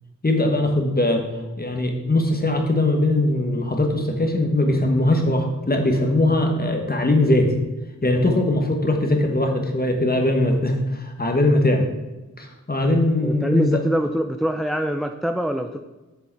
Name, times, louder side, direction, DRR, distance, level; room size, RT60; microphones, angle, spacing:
voice 1, 0.2-1.2 1.6-7.5 8.0-11.8 12.4-13.8, left 1 dB, 30° left, 3 dB, 1.3 m, -20 dB
voice 2, 13.2-15.8, equal, ahead, 6 dB, 0.4 m, -24 dB
7.1 x 6.5 x 4.6 m, 1.1 s
wide cardioid pair, 85°, 31 cm